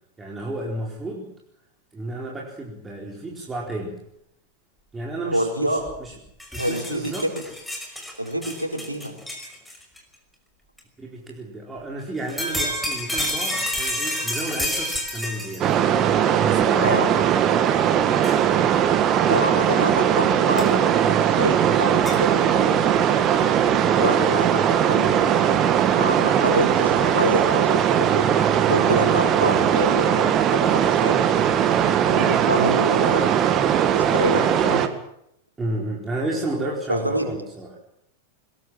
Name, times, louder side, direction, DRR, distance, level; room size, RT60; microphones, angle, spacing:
voice 1, 0.2-1.3 1.9-4.0 4.9-6.1 6.5-7.3 11.0-15.7 16.4-17.2 35.6-37.8, right 2 dB, 15° right, -2 dB, 4.4 m, -32 dB
voice 2, 5.3-5.8 6.6-7.1 8.2-9.2 16.8-17.1 19.2-23.2 24.0-28.3 28.7-31.5 32.0-34.9 36.9-37.3, right 1 dB, 85° right, 3 dB, 4.5 m, -27 dB
sound 1, 5.9-6.0 6.3-10.0 10.8-10.9 12.2-15.7 16.6-16.7 18.2-18.4 20.6-20.7 22.0-22.2, equal, 5° left, 5.6 m, -29 dB
sound 2, 15.6-34.9, right 9 dB, 30° right, 1.9 m, -19 dB
22.0 x 20.5 x 7.6 m, 0.77 s
figure-of-eight pair, 90°, 0 cm